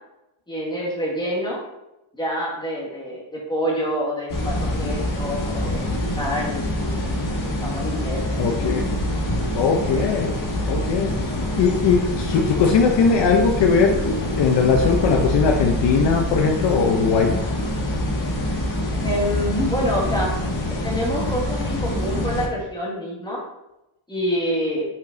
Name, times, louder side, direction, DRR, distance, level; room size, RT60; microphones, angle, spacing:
voice 1, 0.5-1.6 2.1-7.1 7.6-8.4 19.0-20.3 20.7-23.4 24.1-24.9, equal, 10° left, -4 dB, 1.7 m, -27 dB
sound 1, 4.3-22.5, left 1 dB, 40° left, 1.4 m, -25 dB
voice 2, 8.4-8.9 9.5-10.3 10.7-11.1 11.6-14.0 14.4-17.4, left 5 dB, 55° left, 2 dB, 0.8 m, -19 dB
5.6 x 5.1 x 3.8 m, 0.91 s
cardioid pair, 160°, 50 cm